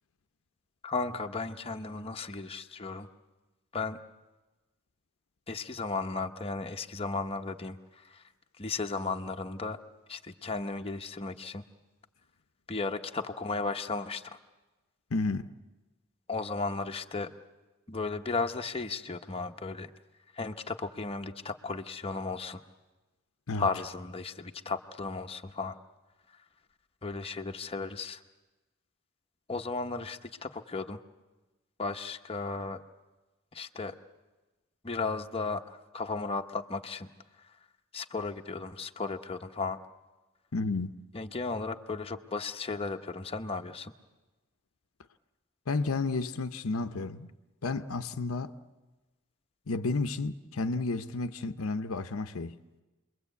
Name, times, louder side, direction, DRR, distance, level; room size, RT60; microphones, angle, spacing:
voice 1, 0.8-3.1 3.7-4.0 5.5-8.2 8.6-9.8 10.1-11.6 12.7-14.4 16.3-17.3 17.9-19.9 20.3-22.6 23.6-25.8 27.0-28.2 29.5-31.0 31.8-32.8 33.5-34.0 34.8-37.1 37.9-39.8 41.1-43.9, left 4 dB, 25° left, 1.0 m, -35 dB
voice 2, 15.1-15.5 23.5-23.7 40.5-40.9 45.7-47.3 47.6-48.6 49.7-52.6, left 3 dB, 75° left, 0.8 m, -31 dB
29.0 x 22.0 x 8.3 m
head